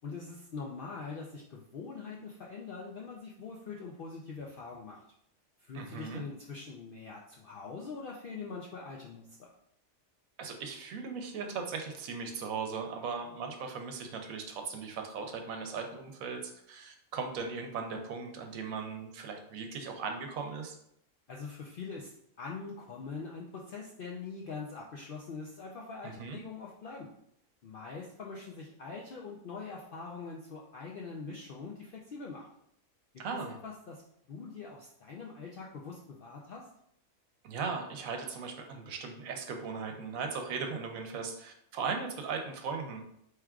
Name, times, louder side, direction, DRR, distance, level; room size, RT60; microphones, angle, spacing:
voice 1, 0.0-5.0 5.6-9.5 21.3-22.1 22.4-27.1 27.6-32.5 33.1-34.0 34.3-36.7, left 4 dB, 70° left, -2 dB, 0.5 m, -43 dB
voice 2, 5.7-6.2 10.4-20.8 26.0-26.4 33.2-33.5 37.4-43.0, right 5 dB, 80° right, 4 dB, 1.1 m, -38 dB
4.6 x 3.2 x 2.3 m, 0.73 s
omnidirectional pair, 1.4 m